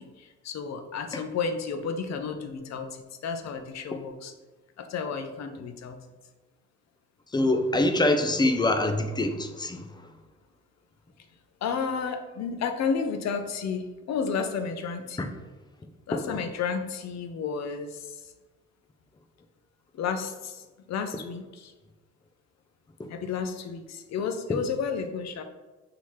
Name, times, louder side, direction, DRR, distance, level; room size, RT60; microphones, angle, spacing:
voice 1, 0.0-4.3 4.8-6.0 11.6-15.3 16.1-18.0 19.9-21.7 23.1-25.4, left 5 dB, 60° left, 6 dB, 0.6 m, -32 dB
voice 2, 7.3-9.8 15.2-15.3 16.1-16.4 23.0-23.1 24.5-24.6, left 2 dB, 15° left, 7 dB, 0.4 m, -25 dB
5.7 x 2.9 x 3.1 m, 1.2 s
cardioid pair, 90°, 30 cm